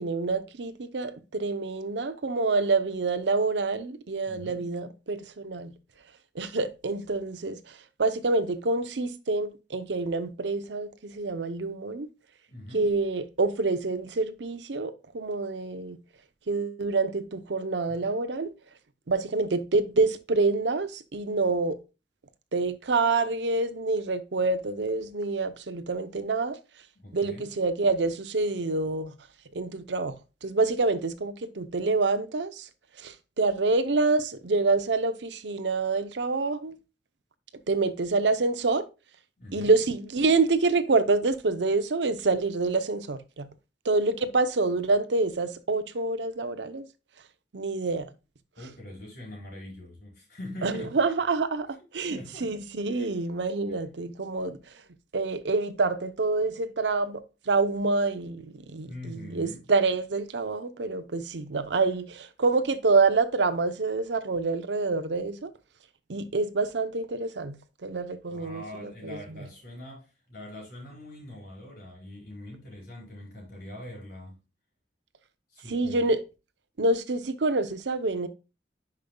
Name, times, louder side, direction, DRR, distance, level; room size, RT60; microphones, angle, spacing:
voice 1, 0.0-5.7 6.4-7.6 8.0-12.1 12.7-16.0 16.5-18.5 19.1-21.8 22.5-26.6 27.1-29.1 29.5-30.1 30.4-32.7 33.0-36.8 37.7-38.8 39.5-43.5 43.8-46.9 47.5-48.1 50.6-51.7 51.9-54.6 55.1-65.5 66.1-67.6 67.8-69.2 75.7-76.2 76.8-78.3, right 3 dB, 75° right, 0.7 m, -27 dB
voice 2, 4.2-4.7 12.5-12.9 17.9-18.0 26.9-27.5 39.4-39.7 48.6-51.0 52.1-52.5 52.9-53.1 53.7-53.8 58.9-59.6 68.3-74.3 75.5-76.1, left 1 dB, 60° left, 4.6 m, -43 dB
10.5 x 5.3 x 2.2 m
head